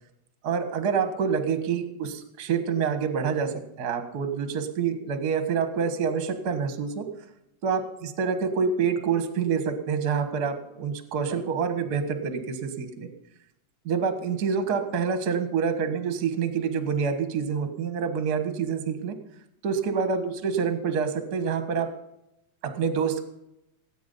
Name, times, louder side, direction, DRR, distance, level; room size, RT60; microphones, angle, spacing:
voice 1, 0.4-7.0 7.6-13.1 13.8-19.1 19.6-21.9 22.6-23.2, right 6 dB, 40° right, 8 dB, 1.4 m, -27 dB
18.0 x 9.0 x 5.4 m, 0.85 s
omnidirectional pair, 3.7 m